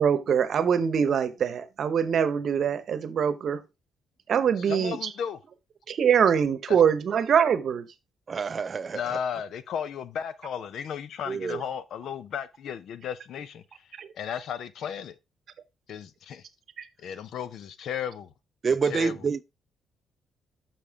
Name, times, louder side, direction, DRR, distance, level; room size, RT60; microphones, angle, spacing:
voice 1, 0.0-3.6 4.3-5.0 5.9-7.9 14.0-14.1 16.8-16.9, right 7 dB, 60° right, 0.9 m, -23 dB
voice 2, 4.6-5.4 6.7-6.8 8.9-13.6 14.1-15.1 15.9-16.4 17.0-18.3 18.9-19.2, left 8 dB, 70° left, 0.7 m, -34 dB
voice 3, 8.3-9.2 11.3-11.6 18.6-19.4, right 5 dB, 40° right, 0.4 m, -27 dB
6.8 x 5.9 x 3.5 m
cardioid pair, 90°, 0 cm